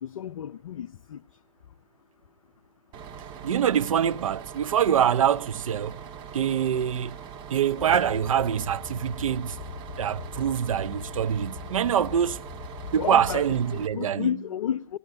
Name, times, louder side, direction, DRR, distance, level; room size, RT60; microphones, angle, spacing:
voice 1, 0.0-1.2 12.9-15.0, left 9 dB, 60° left, 0.6 m, -32 dB
Bus, 2.9-13.9, right 7 dB, 25° right, 1.6 m, -42 dB
voice 2, 3.4-6.0 6.3-7.2 7.5-9.6 10.0-12.4 12.9-14.3, right 9 dB, 65° right, 0.7 m, -24 dB
sound 1, 7.8-13.7, left 7 dB, 30° left, 1.9 m, -41 dB
19.0 x 18.5 x 2.7 m
hypercardioid pair, 130°, 19 cm